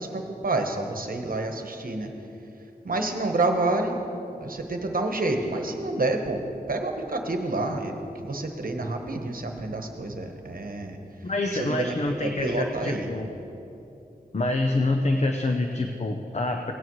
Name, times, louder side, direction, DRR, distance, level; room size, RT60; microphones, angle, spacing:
voice 1, 0.0-2.1 2.8-4.0 4.4-11.0 11.5-11.9 12.2-13.1, right 2 dB, 65° right, 4 dB, 1.1 m, -28 dB
voice 2, 11.2-13.4 14.3-16.7, left 2 dB, 45° left, 4 dB, 0.7 m, -26 dB
17.0 x 9.6 x 3.1 m, 2.9 s
wide cardioid pair, 60°, 16 cm